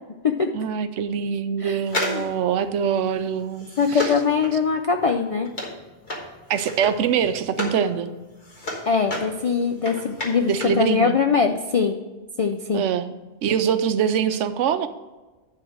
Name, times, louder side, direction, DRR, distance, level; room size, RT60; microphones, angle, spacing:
voice 1, 0.5-4.1 6.5-8.1 10.5-11.2 12.7-13.1 13.4-14.9, right 7 dB, 85° right, 11 dB, 1.0 m, -24 dB
voice 2, 1.6-2.2 3.8-5.5 8.9-12.0 12.4-12.8, left 5 dB, 65° left, 4 dB, 0.3 m, -22 dB
sound 1, 1.9-7.8 8.2-10.8 11.1-11.2, left 2 dB, 40° left, 1.6 m, -32 dB
10.5 x 3.8 x 6.2 m, 1.2 s
omnidirectional pair, 1.2 m